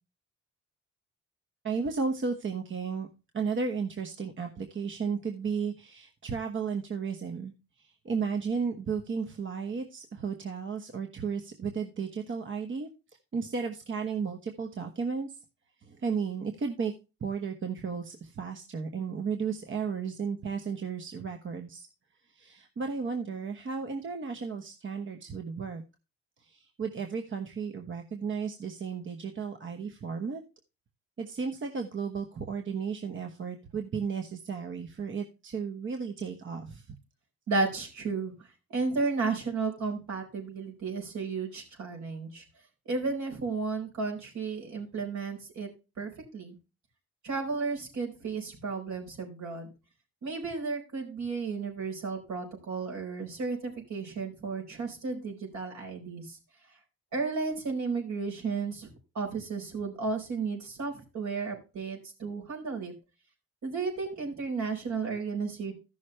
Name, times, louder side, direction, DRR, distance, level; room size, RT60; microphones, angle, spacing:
voice 1, 1.6-3.1 3.3-7.5 7.8-12.9 13.3-15.4 15.8-16.9 17.2-21.9 22.3-25.8 26.4-30.4 31.2-36.9, right 5 dB, 40° right, 4 dB, 1.2 m, -34 dB
voice 2, 37.5-38.3 38.7-42.4 42.9-45.7 46.0-46.6 47.2-49.7 50.2-56.4 57.1-58.9 59.1-62.9 63.6-65.7, right 4 dB, 70° right, 1 dB, 4.6 m, -33 dB
14.0 x 6.3 x 3.3 m, 0.29 s
cardioid pair, 90°, 30 cm